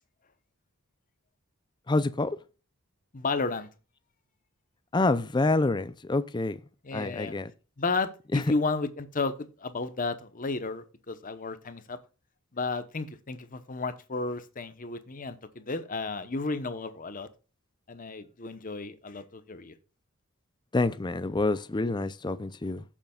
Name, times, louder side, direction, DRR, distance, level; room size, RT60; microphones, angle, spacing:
voice 1, 1.9-2.4 4.9-6.6 6.9-7.5 8.3-8.4 20.7-22.8, left 2 dB, 20° left, 0.5 m, -27 dB
voice 2, 3.1-3.7 6.8-7.3 7.8-12.0 12.5-17.3 17.9-19.7, left 3 dB, 40° left, 1.0 m, -33 dB
15.5 x 7.3 x 2.4 m
head